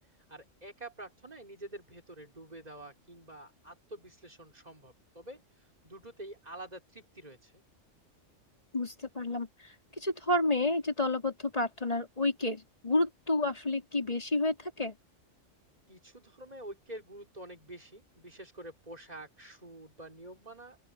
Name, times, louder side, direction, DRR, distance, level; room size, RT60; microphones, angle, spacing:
voice 1, 0.3-7.6 15.9-20.8, right 1 dB, 30° right, 5.0 m, -47 dB
voice 2, 8.7-9.5 10.0-15.0, left 2 dB, 30° left, 3.7 m, -30 dB
open air
omnidirectional pair, 1.3 m